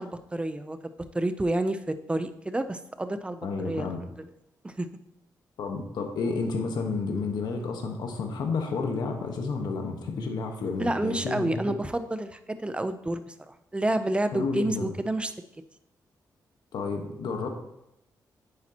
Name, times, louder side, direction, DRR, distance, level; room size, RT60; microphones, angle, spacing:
voice 1, 0.0-3.9 4.6-4.9 10.8-15.3, right 1 dB, 15° right, 10 dB, 0.6 m, -29 dB
voice 2, 3.4-4.0 5.6-11.8 14.3-14.9 16.7-17.5, left 4 dB, 80° left, 3 dB, 1.4 m, -31 dB
9.2 x 8.6 x 3.0 m, 0.85 s
cardioid pair, 95°, 7 cm